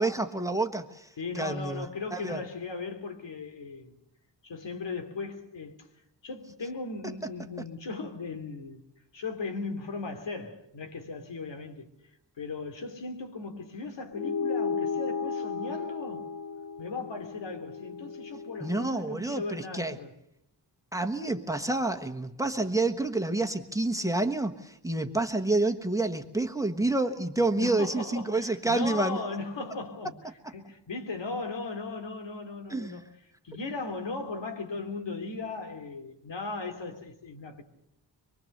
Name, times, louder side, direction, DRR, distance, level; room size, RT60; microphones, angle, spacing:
voice 1, 0.0-1.1 1.3-1.9 2.1-2.4 18.6-20.0 20.9-29.2 32.7-33.0, right 2 dB, 5° right, 1.3 m, -28 dB
voice 2, 1.2-4.0 4.4-5.9 6.2-8.8 9.1-11.9 12.4-16.3 16.8-20.1 27.5-30.2 30.5-33.1 33.4-37.6, left 3 dB, 80° left, 2.9 m, -37 dB
sound 1, 14.1-18.9, left 5 dB, 45° left, 0.9 m, -34 dB
24.5 x 23.5 x 6.6 m
wide cardioid pair, 170°, 43 cm